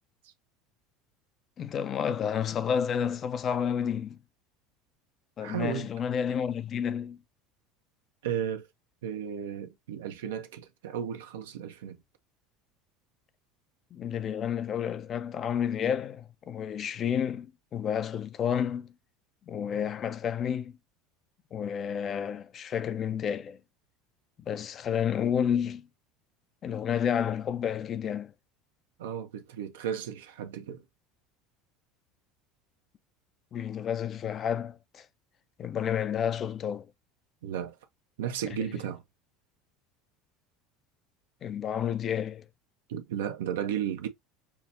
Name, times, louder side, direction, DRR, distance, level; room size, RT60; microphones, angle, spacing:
voice 1, 1.6-4.2 5.4-7.2 13.9-17.5 17.7-18.9 19.5-20.7 21.5-23.6 24.4-25.9 26.6-28.3 33.5-35.1 35.6-36.9 41.4-42.5, left 8 dB, 40° left, 0.5 m, -30 dB
voice 2, 5.4-5.9 8.2-8.7 9.0-12.0 29.0-30.8 37.4-37.8 38.2-39.0 42.9-44.1, right 9 dB, 80° right, 0.7 m, -34 dB
5.8 x 2.1 x 2.7 m
hypercardioid pair, 80°, 0 cm